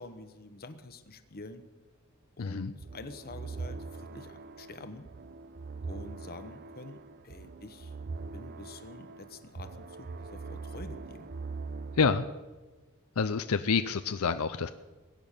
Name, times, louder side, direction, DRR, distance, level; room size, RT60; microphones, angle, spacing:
voice 1, 0.0-1.6 2.4-5.1 5.8-7.9 8.3-11.3, left 2 dB, 45° left, 10 dB, 1.1 m, -47 dB
voice 2, 2.4-2.7 12.0-12.3 13.2-14.7, left 5 dB, 75° left, 10 dB, 0.6 m, -28 dB
sound 1, 2.8-12.3, right 4 dB, 45° right, 0.6 m, -42 dB
21.0 x 9.1 x 6.7 m, 1.2 s
head